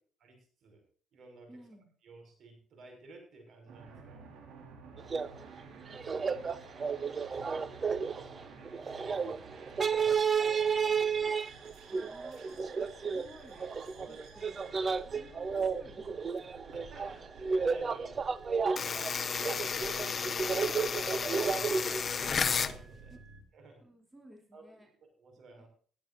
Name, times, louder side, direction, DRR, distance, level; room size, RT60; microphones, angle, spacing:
voice 1, 0.2-0.8 1.1-1.6 2.0-4.2 6.1-6.4 7.2-8.5 8.9-10.3 13.9-14.2 16.7-18.2 19.2-19.5 19.8-23.1 23.5-23.8 24.5-25.7, right 3 dB, 60° right, 4 dB, 6.0 m, -53 dB
voice 2, 1.5-1.9 5.1-5.4 11.9-13.7 14.1-16.8 19.2-19.3 23.1-23.2 23.8-24.9 25.6-25.7, right 1 dB, 15° right, 2 dB, 3.4 m, -56 dB
sound 1, 3.7-23.4, right 4 dB, 80° right, 4.5 m, -53 dB
sound 2, 5.0-5.3 5.6-5.7 5.9-22.3, right 5 dB, 35° right, 0.9 m, -32 dB
sound 3, 18.8-22.8, left 6 dB, 40° left, 0.9 m, -33 dB
20.0 x 10.5 x 2.7 m, 0.44 s
cardioid pair, 105°, 0 cm